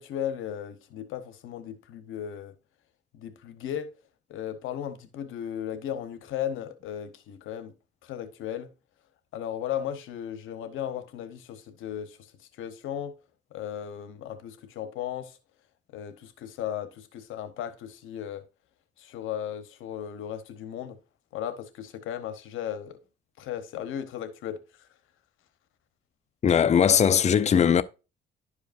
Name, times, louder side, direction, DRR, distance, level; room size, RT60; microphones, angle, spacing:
voice 1, 0.0-2.5 3.1-3.9 4.3-7.7 8.0-8.7 9.3-12.2 12.6-13.1 13.5-15.4 15.9-18.4 19.0-21.0 21.3-23.0 23.4-24.9, left 10 dB, 85° left, 1.0 m, -36 dB
voice 2, 26.4-27.8, left 8 dB, 35° left, 0.5 m, -20 dB
11.0 x 4.9 x 2.5 m
cardioid pair, 90°, 20 cm